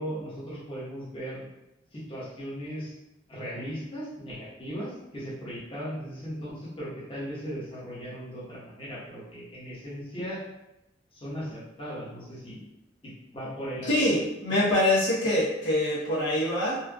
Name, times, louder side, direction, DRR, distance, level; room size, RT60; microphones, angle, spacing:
voice 1, 0.0-1.4 1.9-2.9 3.3-10.4 11.2-12.6 13.0-14.1, equal, 25° left, -8 dB, 1.1 m, -37 dB
voice 2, 13.9-16.8, left 1 dB, 70° left, -9 dB, 1.0 m, -24 dB
4.3 x 2.4 x 2.3 m, 0.89 s
head